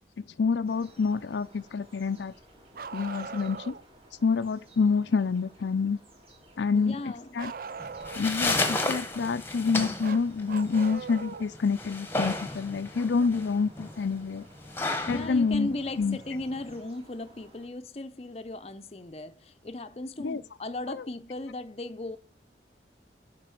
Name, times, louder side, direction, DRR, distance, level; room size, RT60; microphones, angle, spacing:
voice 1, 0.2-2.3 2.9-3.7 4.2-6.0 6.6-7.0 7.3-7.5 8.2-14.4 15.1-16.2 20.2-20.4 20.9-21.0, left 5 dB, 90° left, 0.5 m, -27 dB
sound 1, 0.7-17.7, right 1 dB, 30° right, 2.4 m, -56 dB
Bark, 2.7-3.8 7.4-8.4 10.0-11.5 13.2-13.3 15.2-15.3 16.4-16.5, right 5 dB, 55° right, 0.4 m, -40 dB
voice 2, 6.7-7.4 15.1-22.2, left 2 dB, 35° left, 0.6 m, -37 dB
sound 2, 7.8-16.8, left 2 dB, 15° left, 1.2 m, -33 dB
9.0 x 5.3 x 6.2 m
head